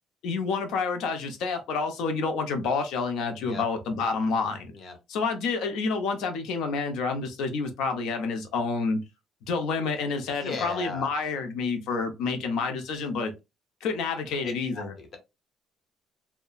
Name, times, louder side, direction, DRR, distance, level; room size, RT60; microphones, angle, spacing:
voice 1, 0.2-4.7 5.1-9.0 9.4-13.3 13.8-14.9, left 4 dB, 75° left, 0.7 m, -28 dB
voice 2, 10.3-11.1 14.4-15.2, left 3 dB, 45° left, 0.9 m, -37 dB
2.8 x 2.2 x 2.3 m
cardioid pair, 145°, 0 cm